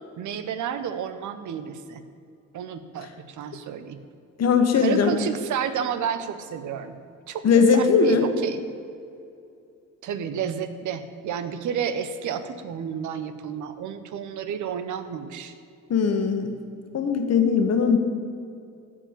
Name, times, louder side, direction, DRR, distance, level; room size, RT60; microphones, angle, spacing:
voice 1, 0.2-2.0 2.5-4.0 4.8-7.0 7.3-8.6 10.0-15.5, right 8 dB, 75° right, 11 dB, 1.0 m, -31 dB
voice 2, 4.4-5.1 7.4-8.3 15.9-16.6 16.9-18.0, left 5 dB, 55° left, 6 dB, 1.5 m, -19 dB
14.5 x 4.9 x 9.0 m, 2.5 s
cardioid pair, 90°, 30 cm